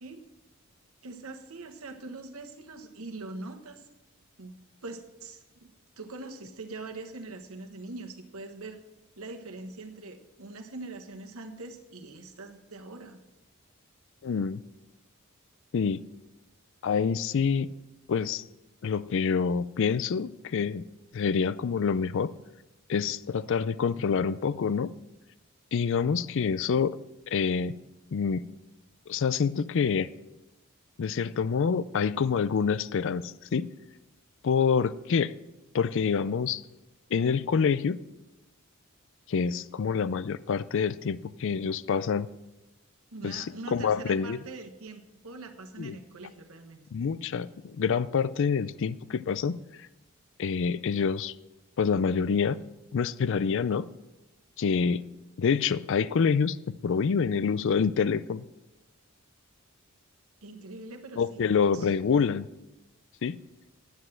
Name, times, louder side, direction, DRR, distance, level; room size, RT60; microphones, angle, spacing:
voice 1, 1.0-3.9 4.4-4.5 4.8-8.8 9.2-13.2 43.1-46.8 60.4-61.9, right 3 dB, 85° right, 5 dB, 1.2 m, -43 dB
voice 2, 14.2-14.6 15.7-16.0 16.8-17.7 18.1-18.4 18.8-20.9 21.1-22.3 22.9-24.9 25.7-26.9 27.3-27.8 28.1-28.4 29.1-30.1 31.0-33.7 34.4-35.3 35.7-36.6 37.1-38.0 39.3-42.3 43.2-44.4 45.8-46.0 46.9-49.6 50.4-51.3 51.8-52.6 52.9-53.9 54.6-55.0 55.4-58.4 61.2-62.5 63.2-63.4, left 6 dB, 60° left, 16 dB, 0.4 m, -27 dB
10.5 x 7.8 x 7.5 m, 0.97 s
head